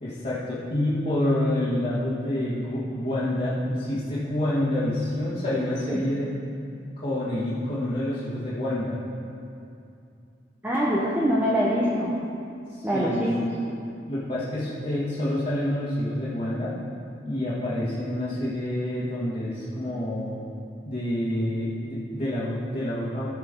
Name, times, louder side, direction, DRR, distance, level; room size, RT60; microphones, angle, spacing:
voice 1, 0.0-6.3 7.0-9.0 12.7-13.2 14.1-16.8 17.2-20.4 20.9-23.3, left 1 dB, 40° left, -10 dB, 1.8 m, -28 dB
voice 2, 10.6-12.2 12.8-13.5, equal, 10° right, -6 dB, 0.9 m, -24 dB
14.5 x 6.5 x 3.8 m, 2.6 s
head